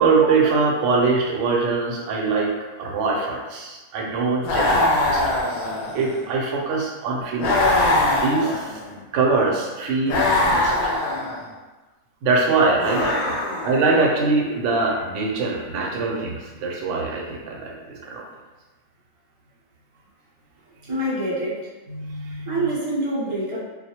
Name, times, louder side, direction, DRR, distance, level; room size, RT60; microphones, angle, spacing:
voice 1, 0.0-5.7 5.9-8.8 9.1-10.9 12.2-13.4 13.6-18.2 21.9-22.5, right 4 dB, 70° right, -1 dB, 0.8 m, -23 dB
sound 1, 4.4-6.2 7.4-9.0 10.1-11.4 12.8-13.9, left 2 dB, 90° left, 1.0 m, -22 dB
voice 2, 20.9-21.7 22.4-23.6, right 1 dB, 40° right, -8 dB, 0.4 m, -25 dB
2.3 x 2.1 x 2.8 m, 1.2 s
omnidirectional pair, 1.4 m